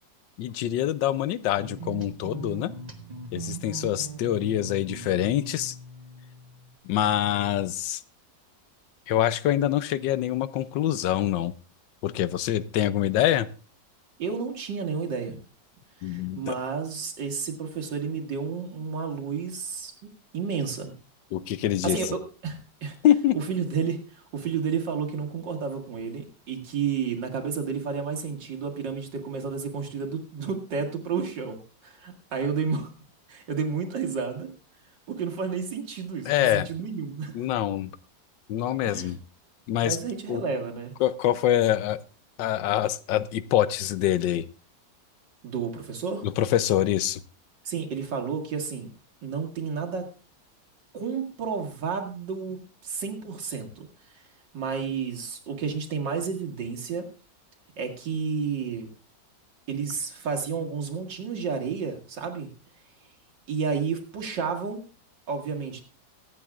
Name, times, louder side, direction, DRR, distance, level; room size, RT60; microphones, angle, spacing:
voice 1, 0.4-2.7 3.3-5.7 6.8-8.0 9.1-11.5 12.0-13.5 16.0-16.6 21.3-22.0 23.0-23.4 36.3-36.7 37.3-37.9 38.5-39.2 39.7-40.0 40.3-40.4 41.0-42.0 42.4-44.5 46.2-47.2, left 12 dB, 85° left, 15 dB, 1.4 m, -25 dB
sound 1, 1.6-6.7, right 3 dB, 25° right, 1.0 m, -40 dB
voice 2, 14.2-15.4 16.0-19.9 20.3-20.9 21.8-23.0 23.3-32.9 33.3-34.5 35.1-37.4 38.9-39.1 39.8-40.9 45.4-46.3 47.6-48.9 49.2-50.1 50.9-53.9 54.1-54.2 54.5-57.1 57.8-58.9 59.7-62.5 63.5-64.8 65.3-65.8, right 5 dB, 80° right, 3 dB, 2.5 m, -31 dB
23.5 x 8.5 x 2.4 m, 0.36 s
omnidirectional pair, 1.9 m